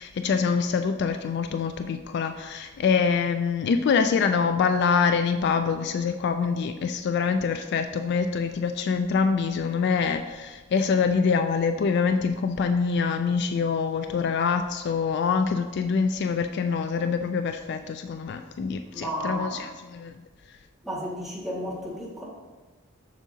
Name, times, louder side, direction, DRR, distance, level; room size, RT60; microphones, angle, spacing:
voice 1, 0.0-20.1, left 5 dB, 55° left, 8 dB, 0.3 m, -25 dB
voice 2, 18.9-19.7 20.8-22.2, equal, ahead, -7 dB, 1.8 m, -33 dB
7.4 x 6.0 x 2.7 m, 1.3 s
head